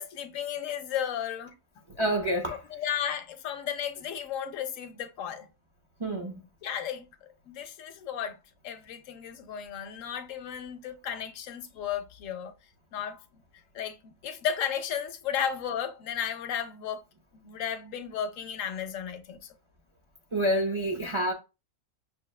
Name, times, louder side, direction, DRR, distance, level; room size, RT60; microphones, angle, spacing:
voice 1, 0.0-1.5 2.7-5.5 6.6-7.1 7.5-8.4 8.6-12.5 12.9-13.2 13.7-17.0 17.4-19.4, left 8 dB, 75° left, 0.9 m, -34 dB
voice 2, 2.0-2.6 6.0-6.4 20.3-21.3, right 1 dB, 45° right, 0.3 m, -27 dB
6.2 x 2.1 x 2.3 m
omnidirectional pair, 1.4 m